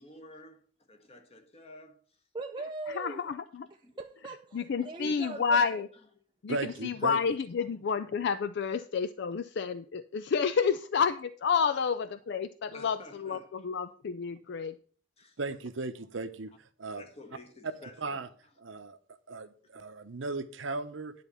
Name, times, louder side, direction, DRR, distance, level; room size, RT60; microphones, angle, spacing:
voice 1, 0.0-0.6 1.1-2.2 3.6-4.0 5.0-5.4 6.9-7.0 7.8-7.9 12.7-13.5 15.2-15.4 16.9-18.2 18.7-18.8 20.7-20.8, left 2 dB, 30° left, 1.4 m, -52 dB
voice 2, 2.3-3.2 4.0-4.6 4.8-5.7, right 3 dB, 25° right, 0.5 m, -39 dB
voice 3, 2.9-3.7 4.5-5.9 6.4-14.8, left 6 dB, 60° left, 0.4 m, -30 dB
voice 4, 6.5-7.2 15.4-17.0 18.0-18.3 18.6-19.0 19.3-21.1, right 3 dB, 70° right, 0.8 m, -36 dB
10.5 x 4.2 x 6.9 m
head